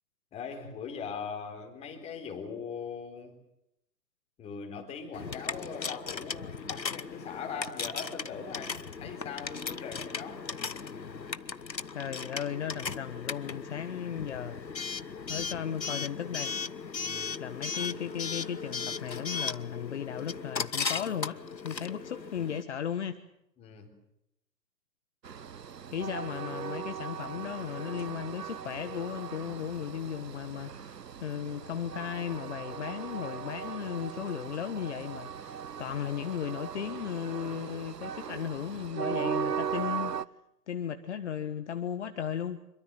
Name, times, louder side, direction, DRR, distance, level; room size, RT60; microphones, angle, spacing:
voice 1, 0.3-3.3 4.4-10.4 17.0-17.4 23.6-23.9, left 6 dB, 10° left, 3 dB, 4.0 m, -40 dB
Coin (dropping) / Alarm, 5.1-22.6, left 5 dB, 90° left, 1.1 m, -37 dB
voice 2, 11.9-14.6 15.3-16.6 17.3-21.4 21.6-23.2 25.9-40.2 40.7-42.6, left 8 dB, 45° left, 9 dB, 1.5 m, -36 dB
Train, 25.2-40.3, right 7 dB, 75° right, 1.1 m, -38 dB
26.5 x 23.5 x 8.0 m, 0.79 s
figure-of-eight pair, 135°, 50 cm